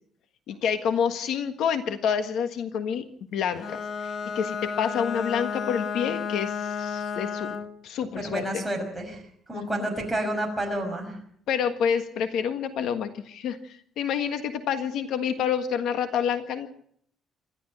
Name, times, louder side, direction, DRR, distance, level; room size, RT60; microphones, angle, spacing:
voice 1, 0.5-3.0 3.3-8.6 9.5-9.9 11.5-16.7, left 7 dB, 70° left, 8 dB, 1.6 m, -28 dB
Bowed string instrument, 3.5-7.8, left 6 dB, 40° left, 1.0 m, -32 dB
voice 2, 8.2-9.2 9.5-11.2, right 1 dB, 5° right, 0 dB, 5.7 m, -29 dB
26.5 x 13.0 x 7.7 m, 0.66 s
cardioid pair, 160°, 0 cm